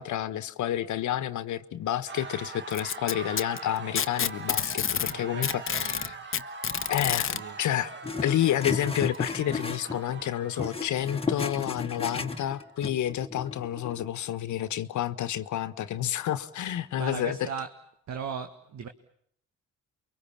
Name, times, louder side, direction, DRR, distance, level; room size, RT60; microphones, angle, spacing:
voice 1, 0.0-6.2 6.9-7.9 8.2-17.5, left 11 dB, 75° left, 1.3 m, -30 dB
sound 1, 2.1-12.8, right 4 dB, 35° right, 1.6 m, -43 dB
Packing tape duct tape, 2.7-5.1 5.4-7.4 8.5-8.6 9.1-9.2 10.1-10.2, left 8 dB, 45° left, 1.0 m, -28 dB
voice 2, 5.0-6.2 7.2-7.6 17.0-17.8 18.1-18.9, right 6 dB, 65° right, 1.8 m, -38 dB
sound 2, 8.0-10.3 10.6-14.1, left 4 dB, 20° left, 1.5 m, -34 dB
29.0 x 23.5 x 7.3 m
cardioid pair, 90°, 30 cm